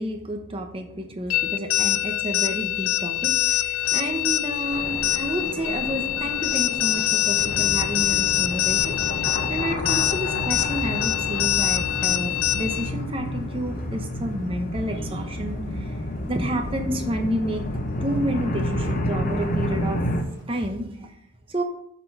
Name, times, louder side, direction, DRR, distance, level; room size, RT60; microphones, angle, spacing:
voice 1, 0.0-15.6 16.3-17.6 18.0-20.0 20.5-21.1 21.5-21.6, right 1 dB, 25° right, 3 dB, 0.9 m, -30 dB
sound 1, 1.3-12.9, left 13 dB, 70° left, 0.4 m, -24 dB
Thunder, 2.7-20.4, equal, 15° left, 2.0 m, -44 dB
sound 2, 7.4-20.2, left 1 dB, 35° left, 0.7 m, -30 dB
7.3 x 4.0 x 5.4 m, 0.72 s
head